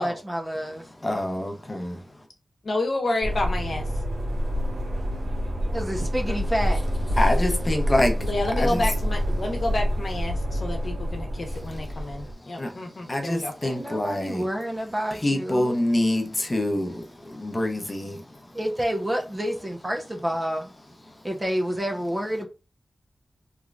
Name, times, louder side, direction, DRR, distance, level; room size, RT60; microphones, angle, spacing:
voice 1, 0.0-0.8 5.7-6.8 13.6-15.8 18.5-20.7 21.2-22.5, equal, 20° right, 0.8 m, -29 dB
voice 2, 0.9-2.3 7.2-8.3 8.6-8.9 11.5-14.5 15.1-18.6 21.1-21.2, left 1 dB, 25° left, 0.8 m, -27 dB
voice 3, 2.7-3.8 6.3-6.4 8.2-13.5, left 2 dB, 60° left, 0.9 m, -29 dB
sound 1, 3.2-12.3, equal, 90° right, 1.6 m, -27 dB
3.7 x 3.1 x 2.4 m
wide cardioid pair, 90°, 0 cm